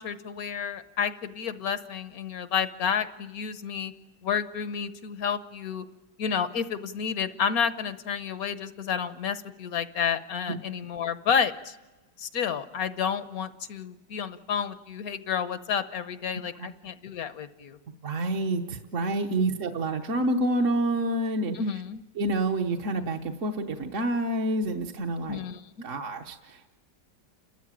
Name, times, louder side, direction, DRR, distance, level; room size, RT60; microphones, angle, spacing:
voice 1, 0.0-3.9 4.2-5.8 6.2-11.8 12.2-17.8 19.3-19.5 21.5-22.0 25.3-25.9, left 7 dB, 60° left, 12 dB, 1.2 m, -30 dB
voice 2, 18.0-21.6 22.1-25.4 25.8-26.7, right 1 dB, 50° right, 1 dB, 1.3 m, -28 dB
30.0 x 13.5 x 8.9 m, 1.1 s
omnidirectional pair, 2.0 m